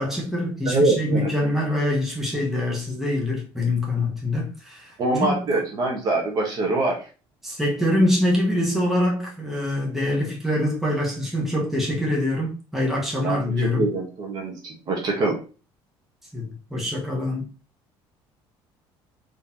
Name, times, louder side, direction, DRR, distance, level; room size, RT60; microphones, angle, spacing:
voice 1, 0.0-4.9 5.2-5.4 7.4-13.8 16.3-17.5, left 1 dB, 5° right, 1.3 m, -24 dB
voice 2, 0.6-1.3 5.0-7.0 13.2-15.4, right 2 dB, 45° right, 1.3 m, -24 dB
3.8 x 3.3 x 2.8 m
cardioid pair, 135°, 10 cm